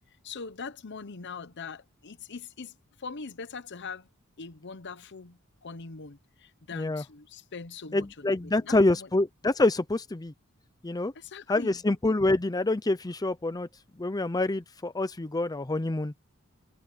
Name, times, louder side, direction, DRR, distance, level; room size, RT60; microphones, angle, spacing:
voice 1, 0.2-4.1 4.4-9.1 11.1-11.8, left 4 dB, 55° left, 0.9 m, -42 dB
voice 2, 6.7-7.0 7.9-10.3 10.8-11.1 11.5-13.7 14.0-16.1, left 2 dB, 20° left, 0.6 m, -26 dB
head